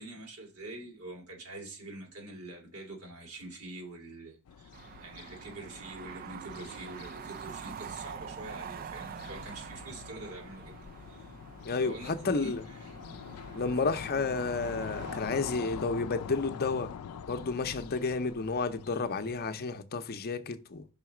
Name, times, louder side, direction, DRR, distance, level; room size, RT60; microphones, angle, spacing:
voice 1, 0.0-4.7 5.0-10.8 11.0-11.4 11.8-13.0, right 2 dB, 75° right, 2.5 m, -45 dB
sound 1, 4.5-19.6, left 7 dB, 80° left, 0.4 m, -45 dB
sound 2, 4.7-15.2, right 7 dB, 40° right, 0.4 m, -46 dB
voice 2, 11.6-12.6 13.5-16.9 17.3-20.9, left 4 dB, 45° left, 0.6 m, -31 dB
5.7 x 4.1 x 5.9 m
head